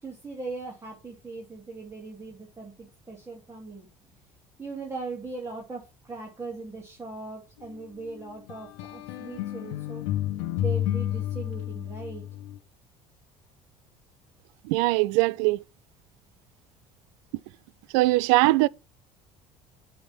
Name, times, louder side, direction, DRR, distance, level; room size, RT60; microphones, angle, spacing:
voice 1, 0.0-3.9 4.6-10.0 10.6-12.2, right 3 dB, 15° right, 2.7 m, -39 dB
sound 1, 8.5-12.6, left 13 dB, 70° left, 0.8 m, -31 dB
voice 2, 14.7-15.6 17.9-18.7, right 21 dB, 70° right, 0.4 m, -21 dB
7.6 x 3.6 x 5.9 m
hypercardioid pair, 65°, 17 cm